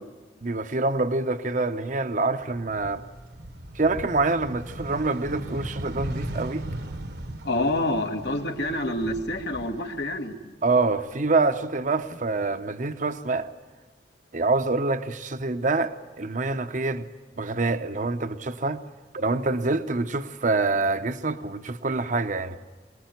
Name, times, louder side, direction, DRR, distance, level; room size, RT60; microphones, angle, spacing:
voice 1, 0.4-3.1 3.7-6.6 10.6-13.5 14.3-17.1 17.4-18.8 19.1-22.6, right 3 dB, 45° right, 0.9 m, -26 dB
sound 1, 2.4-10.5 10.9-12.1, right 1 dB, 65° right, 1.3 m, -38 dB
voice 2, 7.4-10.3, left 1 dB, 75° left, 2.2 m, -27 dB
24.0 x 20.0 x 9.4 m
head